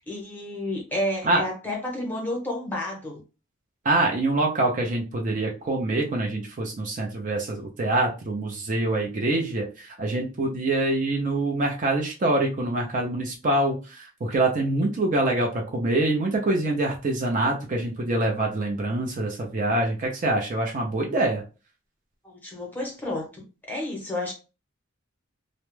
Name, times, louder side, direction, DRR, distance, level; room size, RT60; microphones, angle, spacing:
voice 1, 0.0-3.2 22.2-24.3, left 1 dB, 10° left, -1 dB, 0.8 m, -31 dB
voice 2, 3.8-21.4, right 2 dB, 40° right, 0 dB, 0.4 m, -25 dB
2.2 x 2.0 x 3.0 m, 0.32 s
head